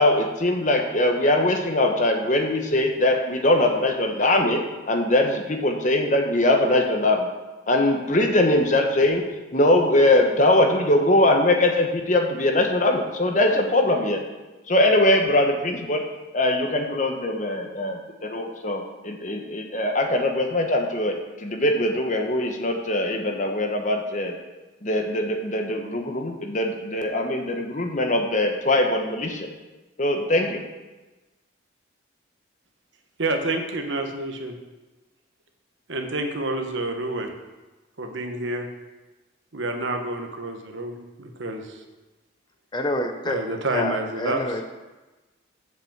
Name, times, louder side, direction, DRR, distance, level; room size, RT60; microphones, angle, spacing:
voice 1, 0.0-4.6 4.9-7.3 7.7-9.2 9.5-14.2 14.7-16.0 16.3-24.3 24.8-29.5 30.0-30.6, left 1 dB, 40° left, 3 dB, 1.1 m, -21 dB
voice 2, 33.2-34.6 35.9-37.3 38.0-38.7 39.5-41.8 43.2-44.6, right 2 dB, 75° right, 4 dB, 1.2 m, -28 dB
voice 3, 42.7-43.4 43.7-44.7, left 1 dB, 20° left, 5 dB, 0.7 m, -27 dB
7.8 x 6.0 x 7.3 m, 1.1 s
head